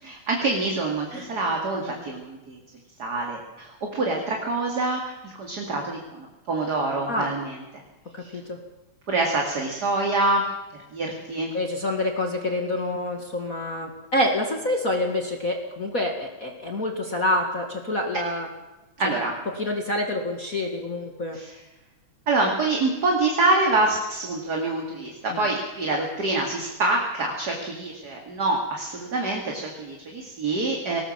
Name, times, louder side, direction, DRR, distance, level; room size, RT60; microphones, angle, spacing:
voice 1, 0.0-2.6 3.0-7.6 8.2-8.3 9.1-10.5 10.9-11.6 19.0-19.3 21.3-21.6 22.3-31.0, right 2 dB, 35° right, 0 dB, 2.6 m, -26 dB
voice 2, 11.5-18.5 19.5-21.4 25.3-25.5, left 1 dB, 30° left, 2 dB, 1.9 m, -27 dB
20.0 x 18.5 x 7.5 m, 1.1 s
omnidirectional pair, 3.5 m